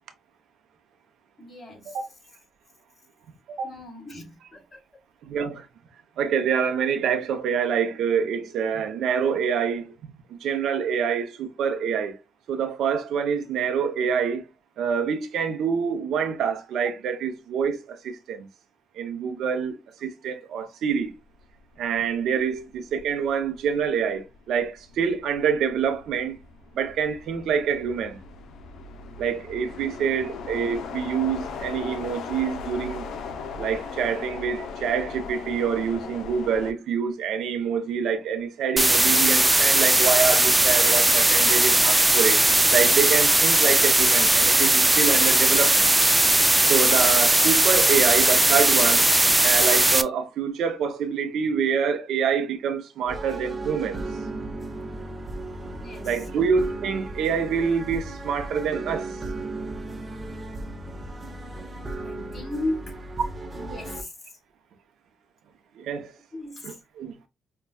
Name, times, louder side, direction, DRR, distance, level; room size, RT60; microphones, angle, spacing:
voice 1, 1.4-2.0 3.6-4.8 29.7-30.1 55.7-56.4 62.0-63.0 63.5-64.1 66.3-66.8, left 1 dB, 30° left, 2.3 m, -36 dB
voice 2, 5.2-5.7 6.2-9.9 10.3-12.2 12.5-14.4 14.8-18.5 19.0-21.2 21.8-26.4 26.7-28.2 29.2-33.1 33.6-42.4 42.7-45.9 46.7-49.1 49.4-54.0 56.0-59.2 65.8-66.1 66.6-67.1, right 7 dB, 75° right, 0.7 m, -26 dB
sound 1, 21.7-22.0 22.4-36.7, left 5 dB, 75° left, 0.6 m, -38 dB
sound 2, 38.8-50.0, right 2 dB, 15° right, 0.4 m, -19 dB
sound 3, 53.1-64.0, right 2 dB, 30° right, 0.8 m, -35 dB
5.4 x 2.3 x 2.3 m
cardioid pair, 90°, 0 cm